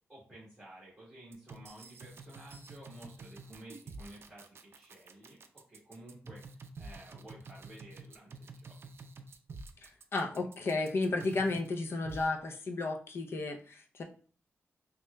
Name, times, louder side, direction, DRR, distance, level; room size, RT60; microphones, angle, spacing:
voice 1, 0.1-5.4 5.7-8.7, right 1 dB, 10° right, -10 dB, 1.9 m, -52 dB
sound 1, 1.3-11.7 12.1-12.3, right 3 dB, 55° right, 0.4 m, -49 dB
voice 2, 9.8-14.0, left 3 dB, 55° left, 4 dB, 0.6 m, -33 dB
6.0 x 2.4 x 2.2 m, 0.42 s
wide cardioid pair, 155°, 5 cm